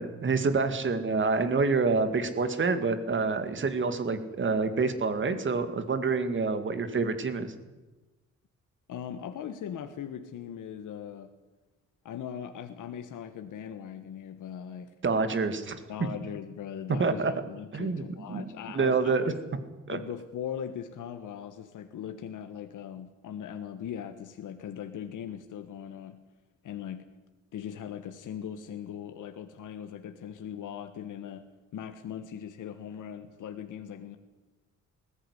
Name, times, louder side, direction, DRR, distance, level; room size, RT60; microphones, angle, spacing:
voice 1, 0.0-7.5 15.0-15.8 17.0-17.3 17.7-18.0 18.3-18.5 18.7-19.2 19.9-20.0, right 4 dB, 40° right, 10 dB, 2.2 m, -27 dB
voice 2, 8.9-11.3 12.0-14.9 15.9-19.3 19.9-26.2 26.6-27.0 27.5-31.4 31.7-34.2, left 9 dB, 85° left, 8 dB, 1.5 m, -39 dB
20.0 x 14.5 x 10.0 m, 1.1 s
cardioid pair, 135°, 30 cm